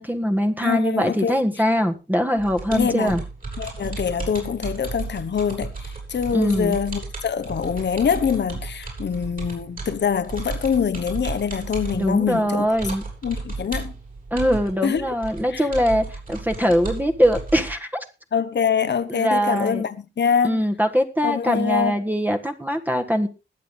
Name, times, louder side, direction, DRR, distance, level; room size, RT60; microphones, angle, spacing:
voice 1, 0.0-3.2 6.3-6.8 12.0-13.0 14.3-18.0 19.1-19.9 20.4-23.3, equal, 10° right, 1.5 m, -22 dB
voice 2, 0.6-1.3 2.7-3.2 3.6-12.7 13.2-13.9 14.8-15.1 15.5-15.7 18.3-20.6 21.2-22.0, left 7 dB, 65° left, 1.1 m, -24 dB
sound 1, 2.4-17.7, right 3 dB, 45° right, 7.6 m, -34 dB
20.5 x 7.9 x 3.7 m
wide cardioid pair, 85°, 20 cm